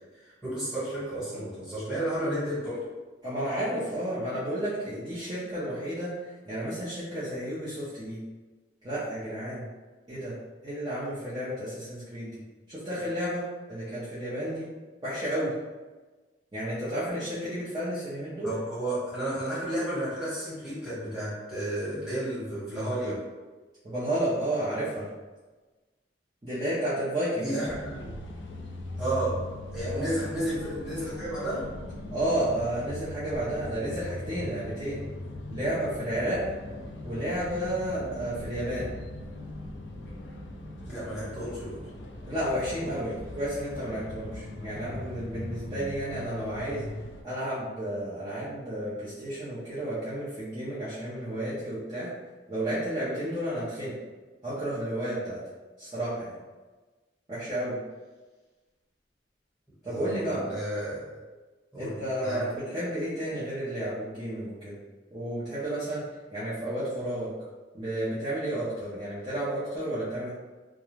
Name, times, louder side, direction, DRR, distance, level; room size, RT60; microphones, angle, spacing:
voice 1, 0.1-2.8 18.4-23.2 27.4-28.1 29.0-29.4 29.7-31.7 40.8-41.8 59.9-61.0 61.7-62.4, right 1 dB, 5° right, -11 dB, 1.2 m, -32 dB
voice 2, 3.2-8.2 8.8-9.7 10.1-10.3 10.6-12.4 12.7-14.7 15.0-15.5 16.5-18.5 23.8-25.1 26.4-27.7 29.8-30.1 32.1-35.0 35.5-36.4 37.0-38.9 42.3-46.9 47.2-52.1 52.5-53.9 54.4-55.4 55.8-56.4 57.3-57.8 59.8-60.5 61.8-64.8 65.1-66.0 66.3-67.3 67.7-70.3, right 1 dB, 25° right, -12 dB, 0.6 m, -32 dB
sound 1, 27.6-47.2, left 1 dB, 75° left, 0.4 m, -40 dB
2.4 x 2.3 x 3.1 m, 1.3 s
head